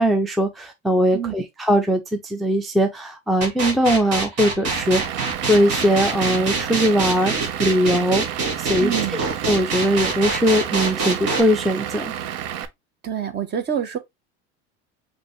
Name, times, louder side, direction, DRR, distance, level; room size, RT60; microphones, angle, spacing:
voice 1, 0.0-5.0 5.4-8.2 8.6-12.1, equal, ahead, 0.5 m, -20 dB
sound 1, 3.4-11.4, right 3 dB, 45° right, 1.9 m, -25 dB
Vehicle / Engine, 4.7-12.7, right 10 dB, 65° right, 0.7 m, -31 dB
voice 2, 8.8-9.2 13.0-14.0, right 9 dB, 30° right, 0.9 m, -26 dB
5.1 x 2.8 x 3.0 m
supercardioid pair, 105°, 34 cm